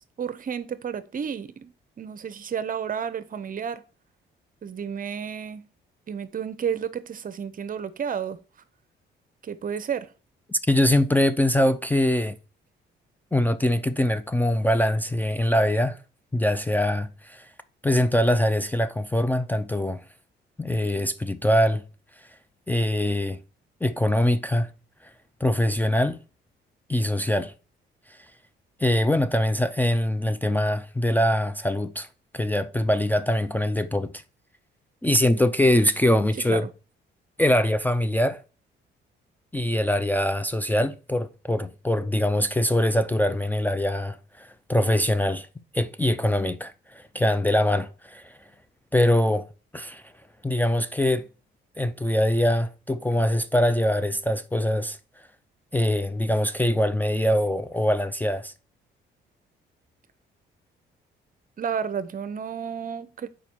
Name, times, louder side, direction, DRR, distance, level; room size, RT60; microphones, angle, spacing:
voice 1, 0.2-1.7 2.0-3.8 4.6-5.6 6.1-8.4 9.4-10.1 36.5-36.7 61.6-63.3, right 7 dB, 45° right, 0.7 m, -31 dB
voice 2, 10.5-12.3 13.3-16.0 16.3-17.5 17.8-20.0 20.6-21.8 22.7-23.4 23.8-24.7 25.4-26.2 26.9-27.5 28.1-28.2 28.8-32.1 32.3-34.1 35.0-36.7 37.4-38.4 39.5-45.5 45.7-48.4 48.9-49.5 49.7-50.1 50.4-51.3 51.8-55.0 55.7-58.5, left 1 dB, 10° left, 0.5 m, -23 dB
6.9 x 5.0 x 4.5 m
cardioid pair, 90°, 20 cm